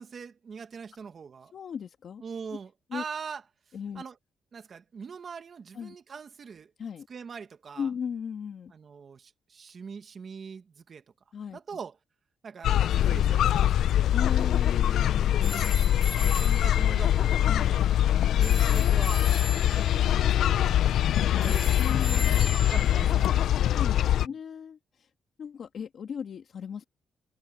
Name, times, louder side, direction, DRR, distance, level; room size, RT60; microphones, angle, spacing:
voice 1, 0.0-1.5 2.2-3.4 3.9-4.1 4.5-6.7 7.1-7.9 8.7-11.0 11.5-11.9 12.4-12.8 13.0-14.1 16.2-17.6 18.3-19.2 20.1-20.9 21.2-22.1 22.6-23.4 24.0-24.1, right 6 dB, 40° right, 1.5 m, -42 dB
voice 2, 1.5-2.2 2.9-3.0 3.7-4.0 5.7-6.0 6.8-7.1 7.8-8.7 11.3-11.8 14.1-16.2 17.4-17.9 19.7-20.0 21.8-22.6 23.6-25.1 25.4-26.8, left 7 dB, 50° left, 1.7 m, -37 dB
sound 1, 12.6-24.3, left 11 dB, 75° left, 0.6 m, -23 dB
sound 2, 14.2-23.7, left 3 dB, 20° left, 1.2 m, -41 dB
cardioid pair, 125°, 0 cm